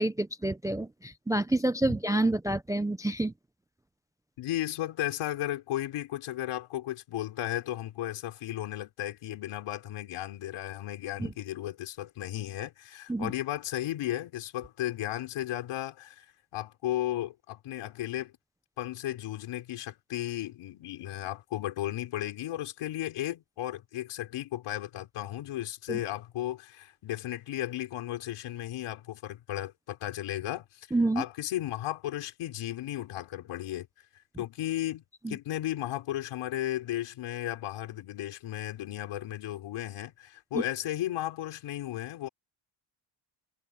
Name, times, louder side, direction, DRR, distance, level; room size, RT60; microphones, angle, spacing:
voice 1, 0.0-3.3 11.2-11.3 13.1-13.3 25.9-26.0 30.9-31.2 35.2-35.4 40.5-40.6, right 2 dB, 10° right, 0.3 m, -28 dB
voice 2, 4.4-16.3 16.5-18.3 18.8-30.9 31.1-33.9 34.4-42.3, left 13 dB, 85° left, 4.2 m, -35 dB
cardioid pair, 145°, 48 cm